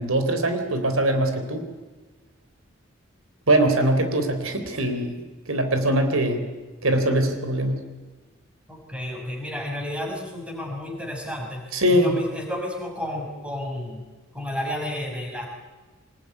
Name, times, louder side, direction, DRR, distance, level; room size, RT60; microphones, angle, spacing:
voice 1, 0.0-1.7 3.5-5.2 5.5-6.5 6.8-7.9 11.7-12.1, right 1 dB, 85° right, 7 dB, 3.7 m, -22 dB
voice 2, 8.7-14.1 14.3-15.5, left 1 dB, 5° right, 1 dB, 5.5 m, -31 dB
24.5 x 20.5 x 9.7 m, 1.3 s
head